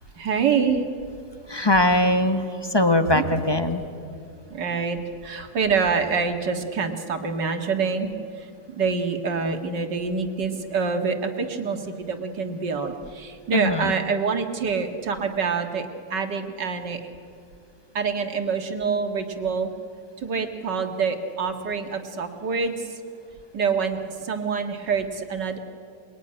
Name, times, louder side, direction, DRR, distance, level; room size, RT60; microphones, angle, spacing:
voice 1, 0.2-0.8 3.1-3.2 4.5-8.1 8.4-17.0 17.9-19.7 20.2-22.8 23.5-25.6, right 5 dB, 55° right, 5 dB, 2.4 m, -26 dB
voice 2, 1.5-3.8 13.5-13.9, left 1 dB, 15° left, 8 dB, 1.0 m, -21 dB
27.5 x 21.5 x 9.9 m, 2.4 s
omnidirectional pair, 2.4 m